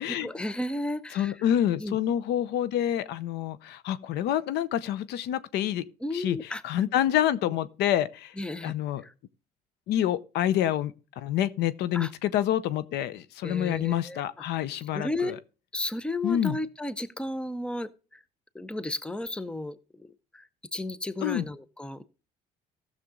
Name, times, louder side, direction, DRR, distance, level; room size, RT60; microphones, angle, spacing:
voice 1, 0.0-1.3 1.8-2.0 6.0-6.6 8.4-8.7 9.0-9.1 11.9-12.1 13.4-14.2 14.9-15.3 15.7-17.9 18.5-20.1 20.3-20.4 20.7-22.0, left 1 dB, 5° left, 0.6 m, -33 dB
voice 2, 1.1-5.8 6.1-8.3 8.6-9.0 9.9-15.4 16.2-16.6 21.2-21.5, left 11 dB, 80° left, 0.7 m, -27 dB
15.0 x 6.6 x 3.7 m
cardioid pair, 110°, 17 cm